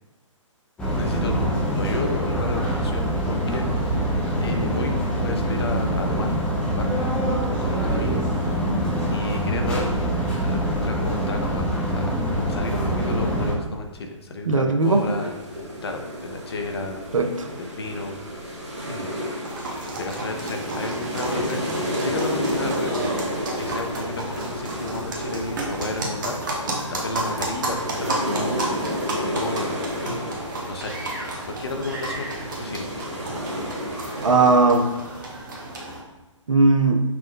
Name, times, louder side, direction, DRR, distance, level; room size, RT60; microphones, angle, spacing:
sound 1, 0.8-13.5, equal, 5° left, 0.6 m, -24 dB
voice 1, 0.9-7.3 7.6-8.8 9.1-12.2 12.5-15.3 15.6-17.0 17.6-19.2 20.0-23.1 23.6-33.2, left 2 dB, 50° left, 4 dB, 0.6 m, -33 dB
voice 2, 14.5-15.0 17.1-17.5 34.2-34.9 36.5-37.0, right 3 dB, 75° right, 6 dB, 0.5 m, -18 dB
sound 2, 14.8-34.5, equal, 60° right, 1.1 m, -31 dB
sound 3, 19.4-36.0, right 2 dB, 35° right, 0.8 m, -32 dB
5.7 x 2.1 x 3.6 m, 1.2 s
figure-of-eight pair, 130°, 17 cm